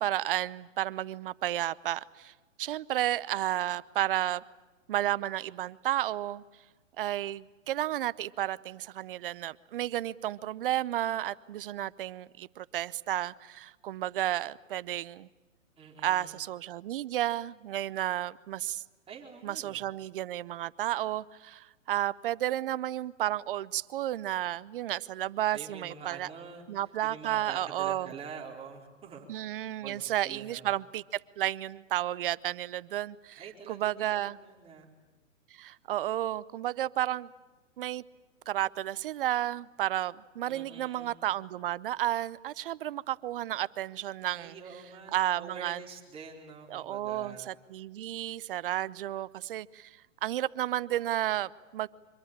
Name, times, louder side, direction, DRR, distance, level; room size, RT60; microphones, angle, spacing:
voice 1, 0.0-2.3 2.6-4.4 4.9-6.4 7.0-15.3 16.0-18.8 19.4-26.3 26.7-28.1 29.3-34.4 35.5-37.3 37.8-38.0 38.5-44.5 45.1-45.8 46.7-51.9, right 13 dB, 45° right, 19 dB, 0.8 m, -32 dB
voice 2, 15.8-16.3 19.1-19.9 25.5-29.3 29.6-30.7 33.4-34.9 40.5-41.2 44.3-47.5, right 6 dB, 15° right, 0 dB, 4.2 m, -46 dB
25.5 x 22.0 x 8.8 m, 1.2 s
hypercardioid pair, 135°, 38 cm